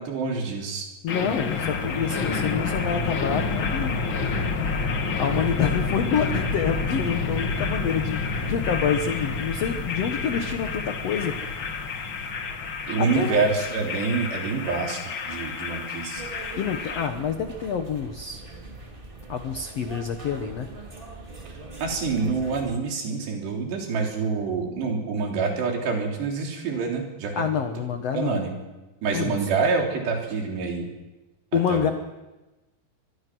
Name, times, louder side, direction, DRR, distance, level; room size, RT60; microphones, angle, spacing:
voice 1, 0.0-0.9 12.9-16.2 21.8-27.4 28.1-28.5 29.0-30.9 31.5-31.9, right 4 dB, 85° right, 1 dB, 5.6 m, -26 dB
voice 2, 1.0-4.0 5.2-11.6 13.0-13.4 16.5-18.4 19.3-20.7 27.4-28.4 29.1-29.5 31.5-31.9, left 7 dB, 85° left, 7 dB, 1.4 m, -27 dB
sound 1, 1.1-17.1, left 4 dB, 50° left, 1.5 m, -29 dB
sound 2, 16.1-22.8, right 3 dB, 15° right, 2.1 m, -42 dB
25.0 x 20.5 x 6.2 m, 1.1 s
omnidirectional pair, 4.7 m